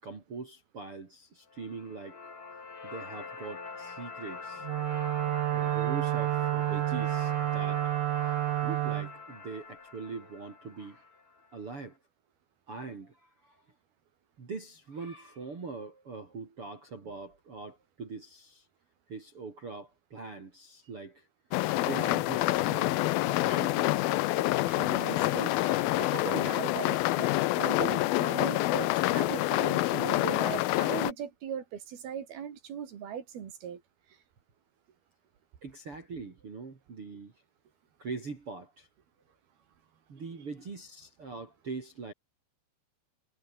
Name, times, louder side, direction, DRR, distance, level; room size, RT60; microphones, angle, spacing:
voice 1, 0.0-2.2 2.8-4.7 5.5-7.8 8.2-8.3 8.6-11.1 11.5-12.0 12.7-13.6 14.4-18.7 19.1-21.3 21.9-23.0 23.3-24.1 35.6-37.3 38.0-38.9 40.1-42.1, right 4 dB, 30° right, 3.8 m, -42 dB
sound 1, 1.5-11.6, left 4 dB, 45° left, 7.3 m, -43 dB
Wind instrument woodwind instrument, 4.6-9.1, right 16 dB, 85° right, 3.5 m, -29 dB
sound 2, 21.5-31.1, left 17 dB, 90° left, 2.1 m, -27 dB
voice 2, 24.7-27.3 27.6-33.8, right 8 dB, 60° right, 4.4 m, -39 dB
omnidirectional pair, 5.3 m